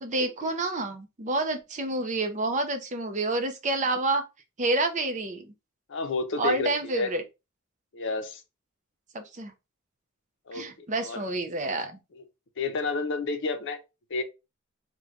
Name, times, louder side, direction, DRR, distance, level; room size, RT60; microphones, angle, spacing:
voice 1, 0.0-4.2 4.6-5.5 6.4-7.2 9.1-9.5 10.5-12.0, right 2 dB, 35° right, 0.6 m, -28 dB
voice 2, 5.9-7.1 7.9-8.4 10.5-10.7 11.0-11.2 12.2-12.3 12.6-13.8 14.1-14.2, left 4 dB, 60° left, 0.6 m, -30 dB
3.1 x 2.2 x 3.6 m
head